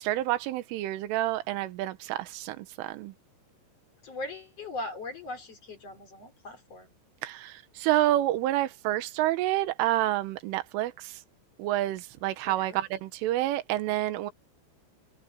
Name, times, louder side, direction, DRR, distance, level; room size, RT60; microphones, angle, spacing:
voice 1, 0.0-3.1 7.2-11.1 11.6-14.3, right 14 dB, 85° right, 3.8 m, -28 dB
voice 2, 4.0-6.9 12.4-12.8, left 2 dB, 35° left, 4.3 m, -39 dB
omnidirectional pair, 5.5 m